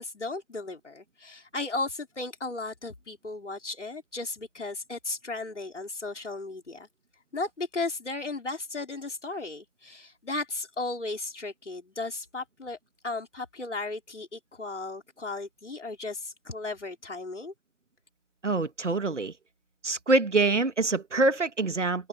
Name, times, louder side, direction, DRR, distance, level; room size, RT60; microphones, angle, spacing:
voice 1, 0.0-6.9 7.3-12.8 13.0-17.5, left 3 dB, 70° left, 4.3 m, -35 dB
voice 2, 18.4-19.3 19.8-22.1, right 3 dB, 75° right, 1.9 m, -25 dB
figure-of-eight pair, 165°, 37 cm